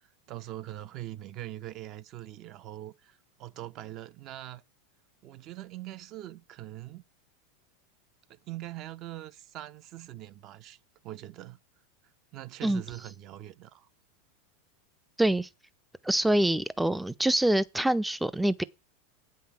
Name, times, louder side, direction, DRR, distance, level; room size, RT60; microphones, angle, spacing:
voice 1, 0.0-4.6 5.2-7.0 8.3-11.6 12.3-13.9, right 14 dB, 45° right, 0.7 m, -42 dB
voice 2, 15.2-15.5 16.0-18.6, right 1 dB, 5° right, 0.4 m, -25 dB
8.5 x 5.7 x 7.3 m
hypercardioid pair, 105°, 0 cm